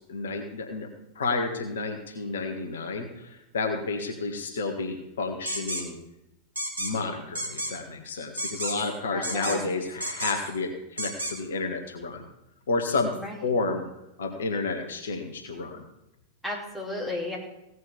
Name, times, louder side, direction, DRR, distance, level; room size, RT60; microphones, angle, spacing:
voice 1, 0.1-6.0 6.8-12.2 12.7-13.1 13.4-13.8 14.2-15.8, left 3 dB, 65° left, 4 dB, 1.7 m, -31 dB
sound 1, 5.5-5.8 6.6-6.9 7.3-7.7 8.4-8.9 9.2-9.7 10.0-10.5 11.0-11.3, right 1 dB, 75° right, 2.7 m, -31 dB
voice 2, 9.1-9.7 13.1-13.5 16.4-17.4, left 2 dB, ahead, -4 dB, 4.6 m, -34 dB
16.5 x 6.4 x 7.2 m, 0.87 s
figure-of-eight pair, 90°, 0 cm